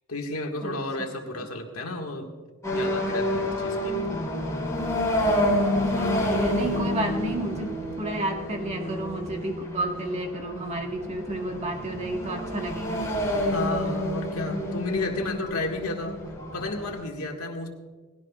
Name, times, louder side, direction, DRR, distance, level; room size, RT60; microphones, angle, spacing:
voice 1, 0.1-2.3 2.7-4.0 13.5-16.2 16.5-17.7, left 2 dB, 70° left, 2 dB, 1.9 m, -32 dB
voice 2, 0.6-1.1 1.3-1.5 5.7-13.4, right 2 dB, 30° right, 2 dB, 1.6 m, -32 dB
sound 1, 2.6-17.0, left 1 dB, 15° left, 5.3 m, -29 dB
20.0 x 16.5 x 2.4 m, 1.4 s
head